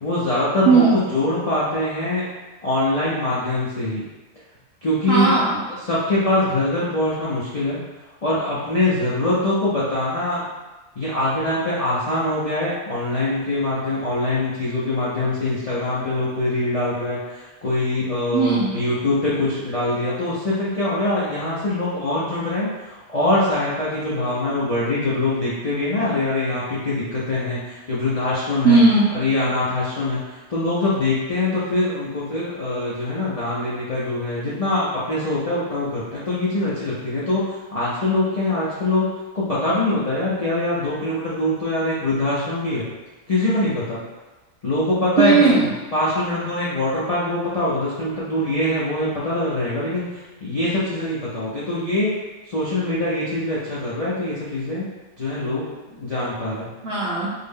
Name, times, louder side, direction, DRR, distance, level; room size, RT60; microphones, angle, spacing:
voice 1, 0.0-2.3 2.6-4.0 4.8-5.4 5.9-7.8 8.2-10.5 11.0-28.8 29.1-39.1 39.3-42.9 43.3-44.0 44.6-45.3 45.9-52.1 52.4-54.9 55.2-56.7, left 2 dB, 55° left, -8 dB, 0.4 m, -23 dB
voice 2, 0.6-1.0 5.1-5.6 18.3-18.8 28.6-29.1 45.2-45.7 56.8-57.3, right 4 dB, 65° right, -6 dB, 0.6 m, -17 dB
3.7 x 2.1 x 3.5 m, 1.1 s
omnidirectional pair, 1.6 m